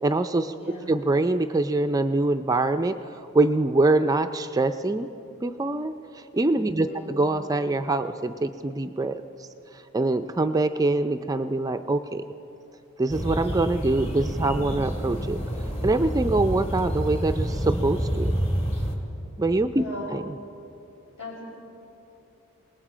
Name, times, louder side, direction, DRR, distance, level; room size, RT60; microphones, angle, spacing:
voice 1, 0.0-0.5 0.9-3.0 3.3-5.1 5.4-9.2 9.7-12.2 13.0-15.4 15.8-18.3 19.4-20.3, right 2 dB, 15° right, 8 dB, 0.4 m, -24 dB
voice 2, 0.6-0.9 6.8-7.1 19.7-20.1 21.2-21.4, left 2 dB, 60° left, -3 dB, 6.1 m, -38 dB
sound 1, 13.1-18.9, equal, 30° left, 1.8 m, -28 dB
27.5 x 19.0 x 5.0 m, 2.9 s
head